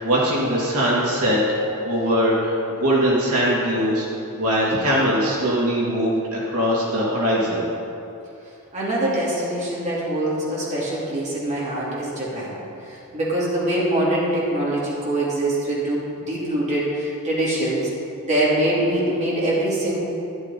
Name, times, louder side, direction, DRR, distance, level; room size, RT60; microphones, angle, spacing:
voice 1, 0.0-1.4 1.8-4.0 4.4-7.7, equal, 75° right, -6 dB, 2.7 m, -21 dB
voice 2, 8.7-12.6 12.8-17.9 18.2-20.0, right 1 dB, 35° right, -7 dB, 2.9 m, -23 dB
12.5 x 12.0 x 4.3 m, 2.8 s
head